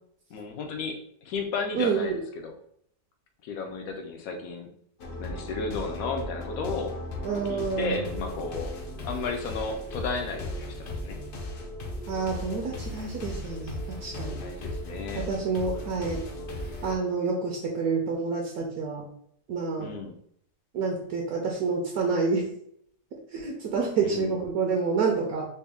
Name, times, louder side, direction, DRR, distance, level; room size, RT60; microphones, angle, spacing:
voice 1, 0.3-2.5 3.4-4.7 5.2-7.0 7.3-8.8 9.0-11.2 14.4-15.3 19.8-20.2 24.0-24.4, left 4 dB, 70° left, 4 dB, 1.0 m, -34 dB
voice 2, 1.7-2.2 7.2-8.1 12.1-14.4 15.1-16.2 16.8-19.1 19.5-19.9 20.7-22.4 23.3-25.5, right 4 dB, 70° right, 0 dB, 1.0 m, -28 dB
sound 1, 5.0-17.0, left 1 dB, 85° left, 0.4 m, -36 dB
4.2 x 2.2 x 3.4 m, 0.69 s
omnidirectional pair, 1.7 m